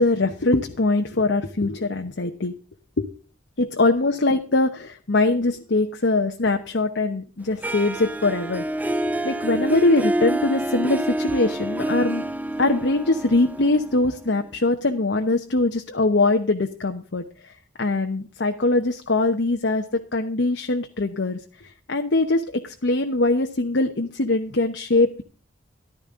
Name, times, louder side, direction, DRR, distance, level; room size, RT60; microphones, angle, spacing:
voice 1, 0.0-2.5 3.0-3.1 3.6-12.2 12.6-25.2, left 2 dB, 70° left, 4 dB, 1.0 m, -22 dB
Harp, 7.6-14.5, right 1 dB, 10° right, 0.5 m, -27 dB
14.0 x 12.5 x 3.7 m, 0.38 s
head